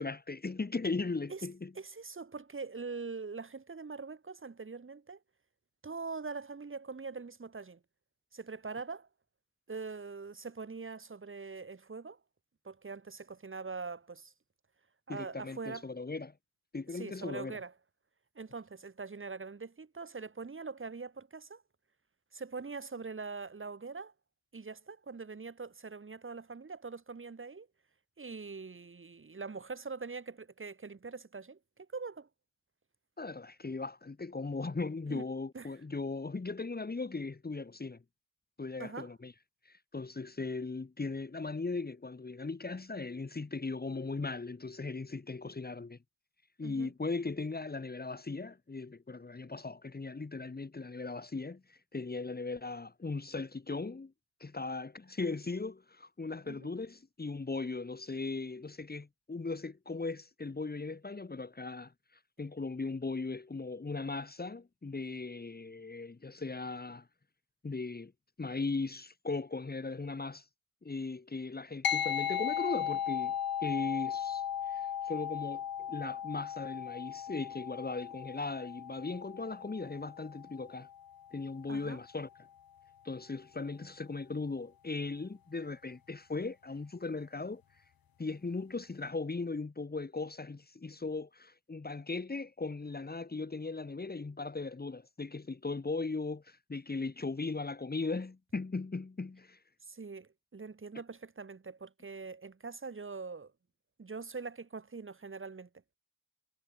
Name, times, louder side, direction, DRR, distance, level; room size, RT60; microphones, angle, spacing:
voice 1, 0.0-1.7 15.1-16.3 16.7-17.6 33.2-38.0 38.6-39.3 39.7-46.0 46.6-54.1 54.4-61.9 62.4-67.1 67.6-68.1 68.4-70.5 70.8-73.4 73.6-80.9 81.3-82.3 83.0-87.6 88.2-99.6, left 3 dB, 20° left, 3.4 m, -38 dB
voice 2, 1.8-5.2 5.8-7.8 8.3-9.1 9.7-12.2 12.6-14.3 15.1-15.9 16.9-17.7 18.4-21.6 22.3-24.1 24.5-27.7 28.2-32.3 35.1-35.2 35.5-35.7 38.8-39.1 46.6-46.9 56.5-56.7 81.7-82.0 99.8-103.5 104.0-105.7, right 4 dB, 25° right, 5.1 m, -43 dB
sound 1, 71.8-81.6, left 9 dB, 50° left, 1.9 m, -37 dB
cardioid pair, 120°, 46 cm